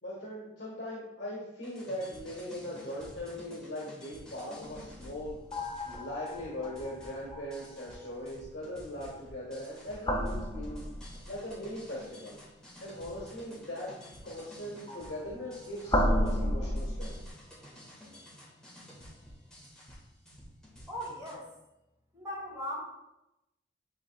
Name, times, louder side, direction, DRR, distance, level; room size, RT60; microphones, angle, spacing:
voice 1, 0.0-5.3 5.8-10.8 11.3-12.4 12.8-13.9 14.2-17.2, left 1 dB, 75° left, -5 dB, 1.6 m, -40 dB
sound 1, 1.6-21.3, equal, 5° left, 1.8 m, -52 dB
sound 2, 4.6-8.1 9.9-11.5 14.9-17.3, equal, 20° left, 0.8 m, -33 dB
voice 2, 20.9-21.5 22.1-22.8, equal, 15° right, -5 dB, 2.3 m, -38 dB
10.5 x 3.9 x 2.4 m, 0.91 s
head